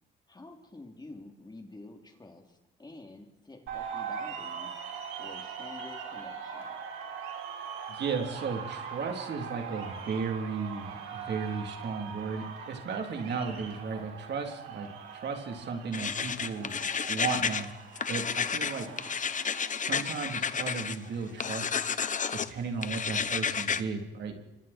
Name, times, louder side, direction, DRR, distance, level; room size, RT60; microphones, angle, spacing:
voice 1, 0.3-4.7 5.2-6.8, left 2 dB, 20° left, 3 dB, 3.3 m, -49 dB
sound 1, 3.7-21.4, right 6 dB, 85° right, 5.2 m, -42 dB
voice 2, 7.9-16.8 17.1-17.7 18.1-18.9 19.8-21.7 22.3-24.3, right 5 dB, 60° right, 3 dB, 3.5 m, -35 dB
sound 2, 15.9-17.7 18.0-21.0 21.4-22.5 22.8-23.8, left 6 dB, 40° left, 1.1 m, -31 dB
28.0 x 24.5 x 4.5 m, 0.96 s
cardioid pair, 90°, 20 cm